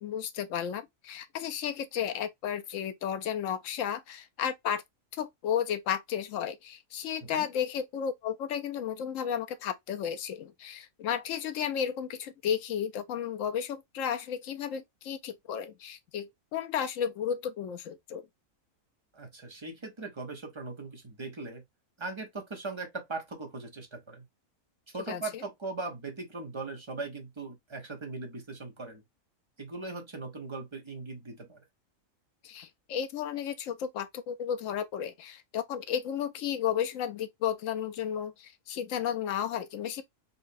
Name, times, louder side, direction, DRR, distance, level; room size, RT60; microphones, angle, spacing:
voice 1, 0.0-4.8 5.1-18.3 25.1-25.2 32.4-40.0, left 8 dB, 75° left, 1.0 m, -33 dB
voice 2, 19.1-21.6 22.0-24.2 24.9-29.0 29.6-31.6, right 3 dB, 25° right, 0.7 m, -39 dB
3.9 x 2.2 x 2.5 m
omnidirectional pair, 1.4 m